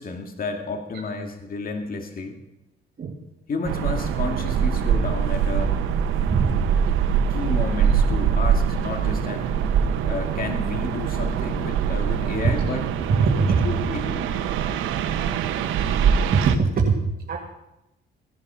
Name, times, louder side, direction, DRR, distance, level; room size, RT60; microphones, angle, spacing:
voice 1, 0.0-2.4 3.5-5.8 7.3-9.5 10.0-12.9 13.6-14.3, left 3 dB, 45° left, 4 dB, 2.2 m, -31 dB
sound 1, 3.6-16.6, right 7 dB, 90° right, 1.0 m, -23 dB
voice 2, 13.2-13.7 16.3-16.9 17.3-17.4, right 5 dB, 50° right, -1 dB, 2.0 m, -20 dB
16.0 x 10.5 x 5.7 m, 0.92 s
cardioid pair, 90°, 20 cm